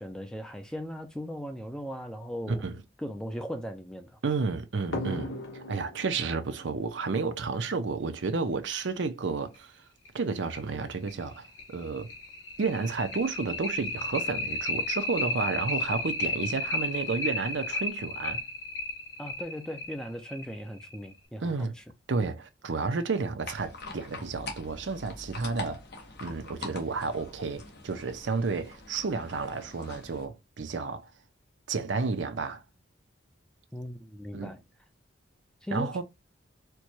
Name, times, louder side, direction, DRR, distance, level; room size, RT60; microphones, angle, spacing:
voice 1, 0.0-2.7 3.0-4.2 19.2-21.8 33.7-34.6 35.6-36.0, equal, 5° left, 0.4 m, -38 dB
voice 2, 4.2-9.7 10.1-12.1 12.6-18.4 21.4-21.7 22.1-25.8 26.2-31.1 31.7-32.6 34.3-34.5 35.7-36.0, right 4 dB, 70° right, 0.6 m, -31 dB
sound 1, 4.9-8.1 9.5-9.6 10.1-10.2 10.6-10.7 11.1-21.1, left 2 dB, 85° left, 1.3 m, -34 dB
sound 2, 23.4-30.3, left 2 dB, 60° left, 1.0 m, -43 dB
4.5 x 2.2 x 2.7 m
head